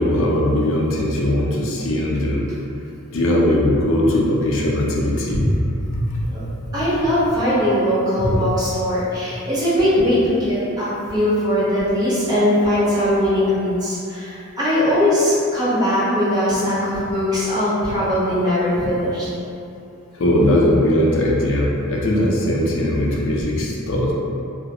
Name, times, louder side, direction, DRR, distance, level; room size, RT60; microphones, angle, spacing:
voice 1, 0.0-2.4 3.1-5.6 5.9-6.1 8.2-8.4 20.2-24.1, left 1 dB, 60° left, -3 dB, 0.4 m, -19 dB
voice 2, 6.7-19.3, left 1 dB, 15° right, -11 dB, 0.7 m, -20 dB
2.3 x 2.0 x 2.9 m, 2.7 s
head